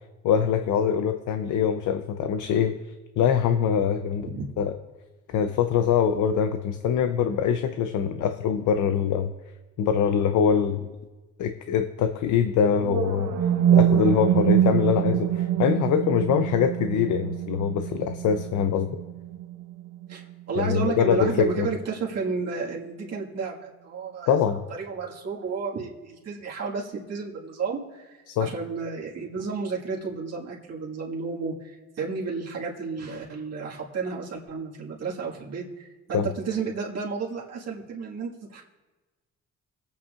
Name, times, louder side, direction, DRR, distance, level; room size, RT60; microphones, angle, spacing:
voice 1, 0.2-2.8 3.2-4.3 4.6-4.7 5.3-9.3 9.8-10.9 11.4-13.3 13.7-18.9 20.6-21.7 24.3-24.6 28.3-28.5 36.1-36.3, left 7 dB, 80° left, 8 dB, 0.7 m, -23 dB
sound 1, 12.8-20.8, right 10 dB, 75° right, 1.0 m, -25 dB
voice 2, 20.1-38.6, right 5 dB, 55° right, -3 dB, 1.8 m, -32 dB
22.0 x 8.5 x 2.5 m, 1.2 s
cardioid pair, 90°, 30 cm